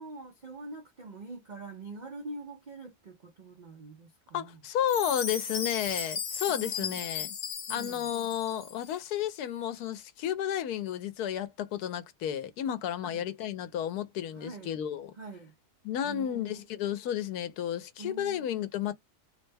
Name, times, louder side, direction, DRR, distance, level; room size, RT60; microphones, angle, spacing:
voice 1, 0.0-4.6 6.5-7.0 7.7-8.1 13.0-13.3 14.4-14.7 15.2-15.5 16.0-16.6 18.0-18.5, right 3 dB, 75° right, 0.4 m, -44 dB
voice 2, 4.3-7.3 7.7-15.1 15.8-18.9, left 10 dB, 75° left, 1.1 m, -32 dB
Chime, 4.9-8.9, left 6 dB, 50° left, 0.8 m, -36 dB
3.3 x 2.1 x 3.2 m
omnidirectional pair, 1.7 m